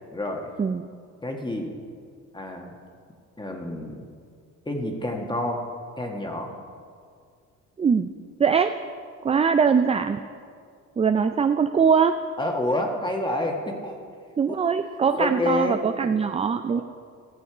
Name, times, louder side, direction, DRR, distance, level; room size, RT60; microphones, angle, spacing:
voice 1, 0.1-0.5 1.2-1.7 2.3-2.7 3.4-4.0 4.6-5.6 6.0-6.5 12.4-13.9 15.1-15.8 16.7-16.8, left 1 dB, 15° left, 2 dB, 1.7 m, -28 dB
voice 2, 7.8-8.1 8.4-8.7 9.2-10.2 11.0-12.2 14.4-16.8, right 6 dB, 20° right, 9 dB, 0.3 m, -21 dB
16.0 x 7.0 x 4.9 m, 2.1 s
cardioid pair, 90°, 30 cm